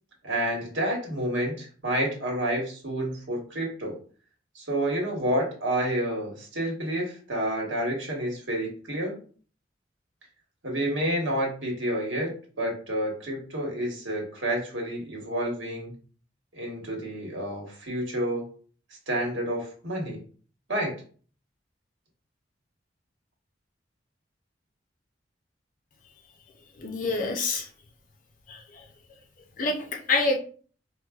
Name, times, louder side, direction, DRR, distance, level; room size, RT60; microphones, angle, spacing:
voice 1, 0.2-3.9 4.5-9.1 10.6-12.3 12.6-15.9 16.5-18.4 19.1-20.2 20.7-20.9, right 1 dB, 85° right, 0 dB, 1.2 m, -29 dB
voice 2, 26.8-27.7 28.5-28.6 29.6-30.4, left 3 dB, 45° left, 3 dB, 0.5 m, -26 dB
4.6 x 2.2 x 2.3 m, 0.42 s
head